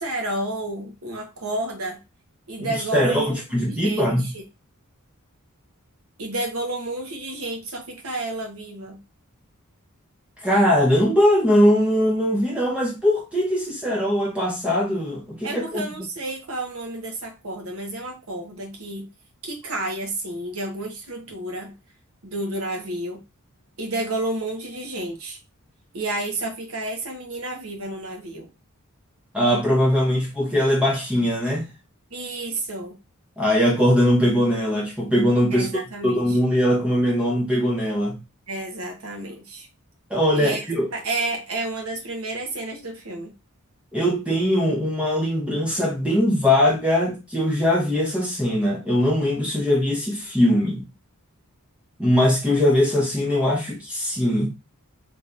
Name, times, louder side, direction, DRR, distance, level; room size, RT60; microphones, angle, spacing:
voice 1, 0.0-2.0 2.5-3.4 3.7-4.4 6.2-9.0 15.4-19.1 19.4-21.7 22.2-23.2 23.8-25.4 25.9-28.5 32.1-33.0 35.5-36.4 38.5-39.7 40.3-40.6 40.9-43.3, right 2 dB, 70° right, 1.1 m, -30 dB
voice 2, 2.6-4.3 10.4-16.0 29.3-31.7 33.4-35.7 36.0-38.2 40.1-40.9 43.9-50.9 52.0-54.5, equal, 5° right, 0.7 m, -21 dB
3.3 x 3.3 x 2.5 m
head